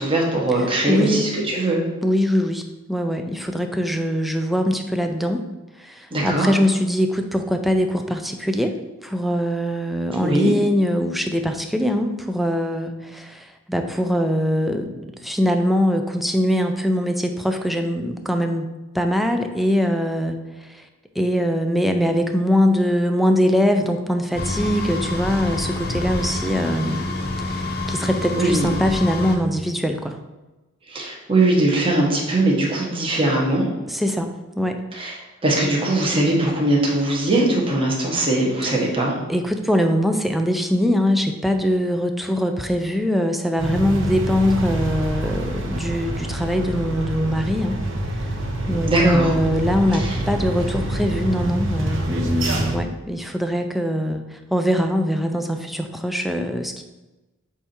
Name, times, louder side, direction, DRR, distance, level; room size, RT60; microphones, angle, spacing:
voice 1, 0.0-1.8 6.1-6.5 10.2-10.5 28.3-28.7 30.9-33.6 34.9-39.1 48.9-49.3 49.9-50.2, right 2 dB, 25° right, -2 dB, 1.3 m, -20 dB
voice 2, 0.9-1.4 2.0-2.6 2.9-5.4 5.8-8.7 9.0-18.7 18.9-20.4 21.2-27.0 27.5-30.2 33.9-34.8 39.3-47.8 48.7-56.8, equal, ahead, 5 dB, 0.4 m, -22 dB
sound 1, 24.4-29.4, left 2 dB, 55° left, 0.8 m, -27 dB
sound 2, 43.6-52.8, right 1 dB, 70° right, 0.9 m, -26 dB
8.2 x 2.8 x 4.4 m, 1.1 s
head